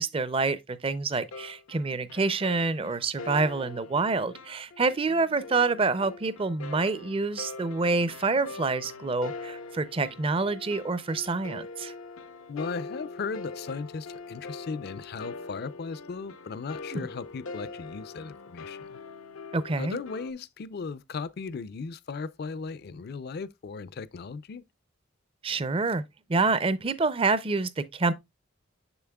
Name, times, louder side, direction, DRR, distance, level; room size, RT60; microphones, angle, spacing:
voice 1, 0.0-11.9 16.9-17.1 19.5-20.0 25.4-26.0 26.3-28.1, right 3 dB, 25° right, 0.4 m, -27 dB
sound 1, 1.3-20.3, left 3 dB, 90° left, 0.7 m, -43 dB
voice 2, 12.5-19.0 19.8-24.6, left 4 dB, 50° left, 0.4 m, -37 dB
7.0 x 6.9 x 2.2 m
head